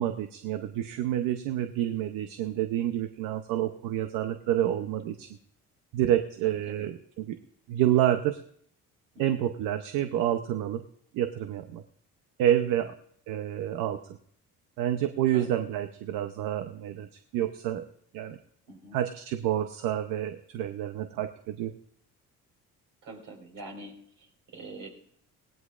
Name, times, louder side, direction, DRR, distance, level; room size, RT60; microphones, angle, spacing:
voice 1, 0.0-5.3 5.9-7.4 7.7-8.4 9.2-10.8 11.1-11.8 12.4-12.9 13.3-14.0 14.8-17.8 18.1-18.4 18.9-21.7, right 11 dB, 90° right, 8 dB, 0.8 m, -28 dB
voice 2, 6.4-6.9 9.1-9.4 12.8-12.9 15.3-15.6 18.7-19.0 23.0-24.9, right 2 dB, 70° right, 1 dB, 4.7 m, -45 dB
21.5 x 17.5 x 2.5 m, 0.66 s
cardioid pair, 85°, 32 cm